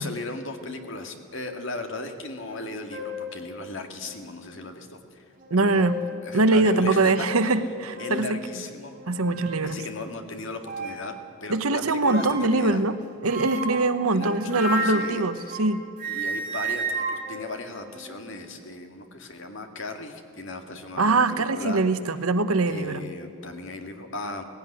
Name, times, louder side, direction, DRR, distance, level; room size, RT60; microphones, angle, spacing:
voice 1, 0.0-5.2 5.6-7.5 8.0-8.9 9.6-11.1 11.4-12.8 14.1-15.6 16.1-21.8 22.7-24.4, left 2 dB, 60° left, 5 dB, 2.0 m, -37 dB
sound 1, 2.5-2.6 2.9-3.3 4.0-4.1 5.4-6.1 6.6-6.7 7.2-7.4 7.9-8.2 8.9-9.6 10.6-11.1 12.0-12.6 13.2-15.7 16.0-18.3, right 2 dB, 40° right, 4.2 m, -32 dB
voice 2, 5.5-6.0 6.3-8.4 9.1-9.8 11.5-13.0 13.2-15.8 21.0-23.0, right 2 dB, 80° right, 11 dB, 1.1 m, -23 dB
18.5 x 16.5 x 9.9 m, 2.3 s
head